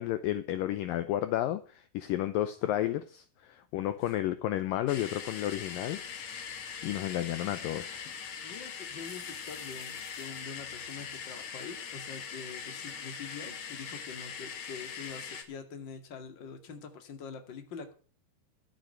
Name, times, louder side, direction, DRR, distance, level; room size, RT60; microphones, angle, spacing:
voice 1, 0.0-6.5 6.8-8.0, left 13 dB, 80° left, 2.1 m, -32 dB
sound 1, 4.9-15.4, left 7 dB, 55° left, 2.4 m, -41 dB
voice 2, 8.4-17.9, left 5 dB, 35° left, 2.1 m, -45 dB
13.5 x 7.9 x 7.8 m
omnidirectional pair, 4.7 m